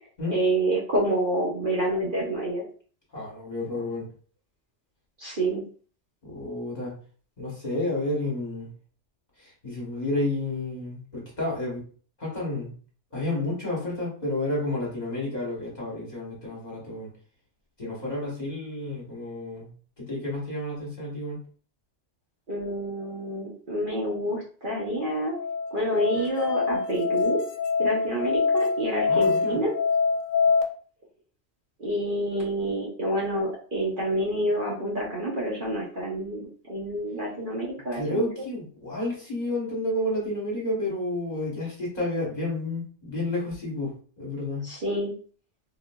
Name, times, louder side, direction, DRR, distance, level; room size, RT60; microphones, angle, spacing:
voice 1, 0.3-2.6 5.2-5.6 22.5-25.3 25.7-27.4 27.8-29.7 31.8-38.3 44.6-45.1, right 1 dB, 50° right, -4 dB, 0.9 m, -28 dB
voice 2, 3.1-4.0 6.2-6.9 7.4-8.7 9.4-11.8 12.2-12.7 13.1-17.1 17.8-19.7 20.0-21.4 29.1-29.6 37.9-44.7, left 1 dB, 35° left, -4 dB, 1.2 m, -30 dB
Musical instrument, 24.9-30.6, left 5 dB, 75° left, 0.9 m, -25 dB
3.7 x 2.4 x 2.2 m, 0.42 s
omnidirectional pair, 1.3 m